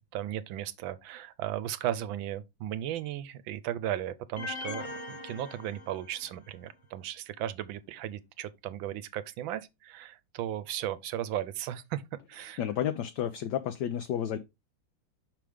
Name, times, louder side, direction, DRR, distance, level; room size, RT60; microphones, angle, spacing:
voice 1, 0.0-12.0 12.3-12.6, right 12 dB, 80° right, 1.4 m, -36 dB
sound 1, 4.4-6.5, left 3 dB, 35° left, 1.0 m, -41 dB
voice 2, 12.6-14.4, left 10 dB, 70° left, 1.0 m, -31 dB
5.9 x 5.0 x 3.4 m
omnidirectional pair, 2.2 m